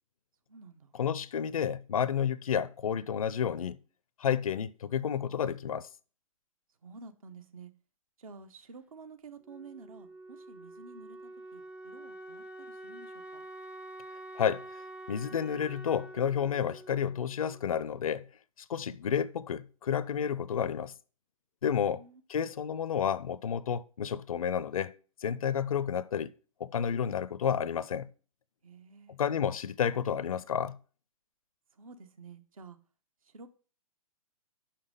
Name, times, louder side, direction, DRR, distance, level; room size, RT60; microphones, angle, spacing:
voice 1, 0.5-0.9 6.8-7.7 8.2-11.2 11.5-13.4 18.8-19.1 21.8-22.2 28.6-29.2 31.7-32.8 33.2-33.5, right 4 dB, 70° right, 0.9 m, -51 dB
voice 2, 1.0-3.8 4.2-5.9 14.4-14.6 15.1-18.3 18.7-20.9 21.6-22.0 22.3-24.9 25.2-26.3 26.6-28.1 29.1-30.8, left 8 dB, 75° left, 0.5 m, -30 dB
Wind instrument woodwind instrument, 9.4-18.1, right 1 dB, 5° right, 0.4 m, -47 dB
5.8 x 5.4 x 5.2 m
figure-of-eight pair, 120°, 18 cm